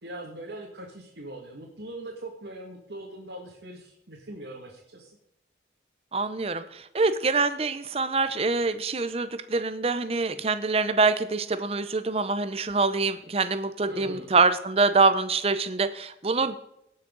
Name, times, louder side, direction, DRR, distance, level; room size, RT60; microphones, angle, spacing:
voice 1, 0.0-5.1 13.9-14.3, right 1 dB, 80° right, -2 dB, 2.0 m, -41 dB
voice 2, 6.1-16.5, right 4 dB, 35° right, 12 dB, 0.7 m, -25 dB
18.5 x 6.5 x 3.9 m, 0.80 s
head